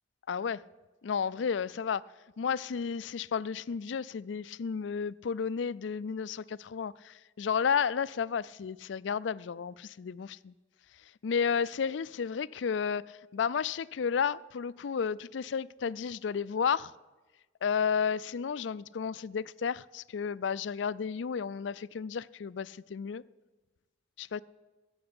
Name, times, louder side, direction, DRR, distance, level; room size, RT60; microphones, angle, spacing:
voice 1, 0.3-0.6 1.0-2.1 2.4-10.5 11.2-16.9 17.6-23.2 24.2-24.4, left 6 dB, 75° left, 0.4 m, -32 dB
13.5 x 7.9 x 9.8 m
head